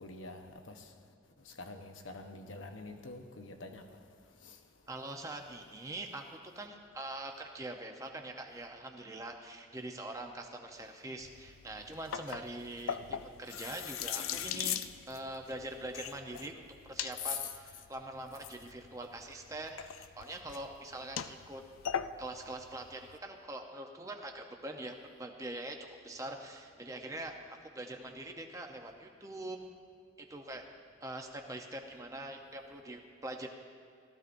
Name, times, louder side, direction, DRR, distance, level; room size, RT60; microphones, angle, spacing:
voice 1, 0.0-0.8 1.6-3.8 17.2-17.5, left 5 dB, 70° left, 0.9 m, -43 dB
voice 2, 4.9-14.8 15.1-21.6 22.2-27.3 27.6-29.6 30.3-30.7 31.0-33.5, right 1 dB, 15° right, 0.7 m, -43 dB
sound 1, 11.2-23.2, left 9 dB, 90° left, 0.4 m, -41 dB
16.5 x 13.5 x 2.6 m
head